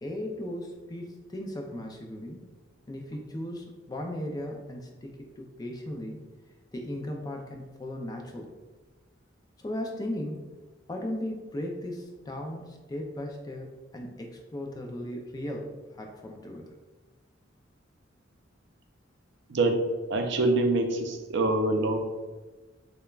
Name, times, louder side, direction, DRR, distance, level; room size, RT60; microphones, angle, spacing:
voice 1, 0.0-2.5 2.9-6.2 6.7-8.5 9.6-10.5 10.9-16.7, left 1 dB, 20° left, 1 dB, 0.4 m, -37 dB
voice 2, 20.1-22.0, right 2 dB, 65° right, 4 dB, 0.5 m, -25 dB
6.7 x 2.2 x 2.3 m, 1.3 s
head